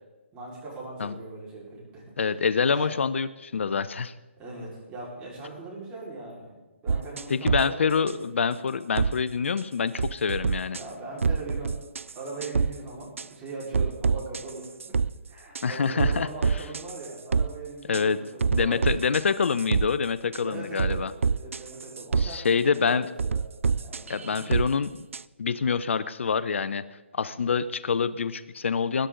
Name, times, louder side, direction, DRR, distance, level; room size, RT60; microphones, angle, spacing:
voice 1, 0.3-2.0 2.7-2.9 4.4-6.6 6.8-7.9 10.7-11.8 12.1-15.0 15.3-19.0 20.4-22.5 22.8-23.4 23.8-24.5, right 3 dB, 15° right, -4 dB, 4.5 m, -40 dB
voice 2, 2.2-4.1 7.3-10.8 15.6-16.6 17.9-18.2 18.5-21.1 22.2-23.1 24.1-25.1 25.4-26.8 27.1-29.1, left 5 dB, 70° left, 15 dB, 0.6 m, -26 dB
sound 1, 6.9-7.6 8.1-8.2 9.0-9.1 9.6-9.7 10.0-10.8 11.2-12.1 12.4-12.7 13.2-13.3 13.7-15.1 15.5-15.6 16.0-17.5 17.9-18.0 18.4-19.9 20.3-20.4 20.8-22.3 23.2-24.7 25.1-25.2, right 5 dB, 85° right, 0.4 m, -26 dB
21.0 x 10.5 x 3.8 m, 1.1 s
hypercardioid pair, 150°, 7 cm